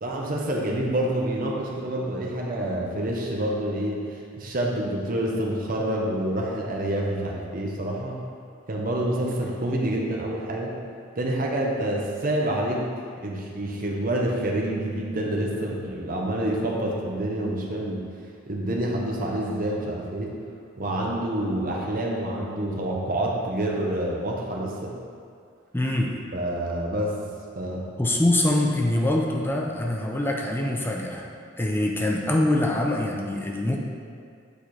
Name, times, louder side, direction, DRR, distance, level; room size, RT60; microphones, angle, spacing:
voice 1, 0.0-8.2 8.7-10.7 11.1-12.8 13.1-18.0 18.5-20.3 20.8-24.9 26.3-27.2 27.6-27.9, right 1 dB, 45° right, -1 dB, 0.8 m, -27 dB
voice 2, 25.7-26.1 28.0-31.3 31.6-33.8, left 1 dB, 10° left, 0 dB, 0.5 m, -24 dB
8.3 x 4.3 x 3.2 m, 2.2 s
head